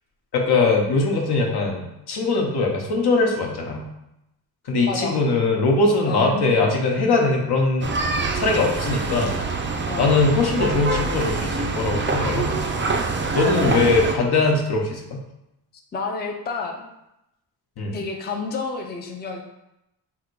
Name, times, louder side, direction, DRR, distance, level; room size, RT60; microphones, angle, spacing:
voice 1, 0.3-3.9 4.7-7.9 8.3-9.4 10.0-12.7 13.4-15.2 17.8-18.0, left 3 dB, 65° left, 1 dB, 1.0 m, -21 dB
voice 2, 4.8-5.2 6.1-6.4 9.9-10.1 13.8-14.0 15.9-16.9 17.9-19.4, left 4 dB, 25° left, 2 dB, 0.5 m, -29 dB
sound 1, 7.8-14.2, right 3 dB, 30° right, 0.5 m, -25 dB
3.6 x 2.5 x 4.6 m, 0.87 s
cardioid pair, 95°, 41 cm